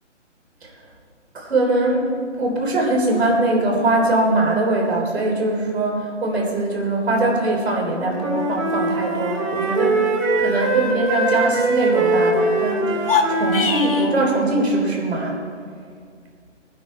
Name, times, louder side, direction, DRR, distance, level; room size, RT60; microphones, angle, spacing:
voice 1, 1.3-10.1 10.4-15.4, right 2 dB, 55° right, -1 dB, 3.7 m, -22 dB
Wind instrument woodwind instrument, 7.8-14.5, right 2 dB, 30° right, 2.3 m, -22 dB
sound 1, 12.9-14.1, left 5 dB, 50° left, 1.2 m, -22 dB
20.5 x 9.5 x 4.4 m, 2.1 s
hypercardioid pair, 160°, 37 cm